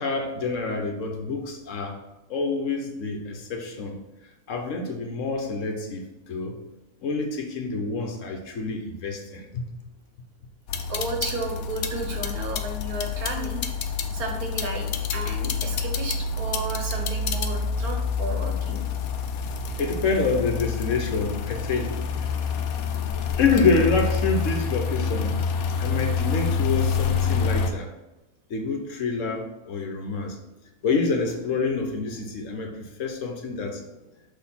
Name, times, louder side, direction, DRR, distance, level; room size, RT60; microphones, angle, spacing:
voice 1, 0.0-2.0 2.3-4.0 4.5-6.6 7.0-9.6 19.8-22.4 23.4-25.3 25.8-27.9 28.5-30.4 30.8-33.8, left 4 dB, 60° left, 3 dB, 1.2 m, -27 dB
sound 1, 10.7-27.7, left 5 dB, 75° left, 1.1 m, -27 dB
voice 2, 10.9-13.6 14.1-18.8, right 2 dB, 80° right, 2 dB, 1.7 m, -33 dB
6.3 x 3.5 x 5.6 m, 1.0 s
omnidirectional pair, 1.6 m